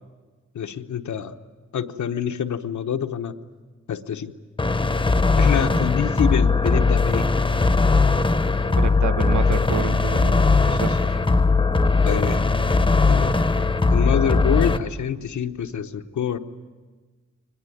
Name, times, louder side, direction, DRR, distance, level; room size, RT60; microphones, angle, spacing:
voice 1, 0.5-1.4 1.7-3.3 3.9-4.3 5.4-7.3 12.0-12.4 13.1-13.3 13.9-16.4, left 8 dB, 80° left, 7 dB, 1.1 m, -26 dB
sound 1, 4.6-14.8, left 3 dB, 15° left, 0.8 m, -19 dB
voice 2, 8.7-11.2, right 9 dB, 80° right, 11 dB, 0.9 m, -30 dB
24.0 x 20.0 x 9.3 m, 1.4 s
wide cardioid pair, 180°, 29 cm